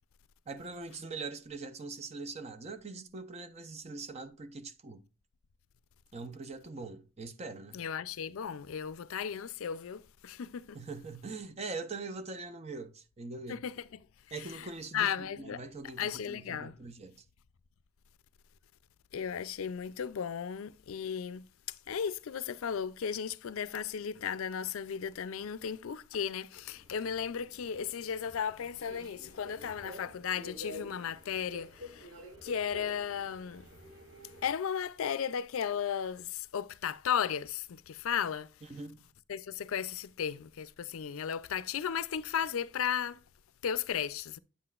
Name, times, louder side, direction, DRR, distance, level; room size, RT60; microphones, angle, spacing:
voice 1, 0.5-5.0 6.1-7.8 10.7-13.6 14.3-17.2 38.7-39.0, right 3 dB, 30° right, 0.6 m, -42 dB
voice 2, 7.7-10.8 13.5-14.0 14.4-14.7 14.9-15.6 16.0-16.7 19.1-21.5 21.9-32.1 32.4-33.7 34.4-38.5 39.3-43.2 43.6-44.4, left 8 dB, 80° left, 0.4 m, -35 dB
Subway metro underground, 26.5-34.5, left 1 dB, 65° right, 3.0 m, -50 dB
8.4 x 7.7 x 2.4 m
head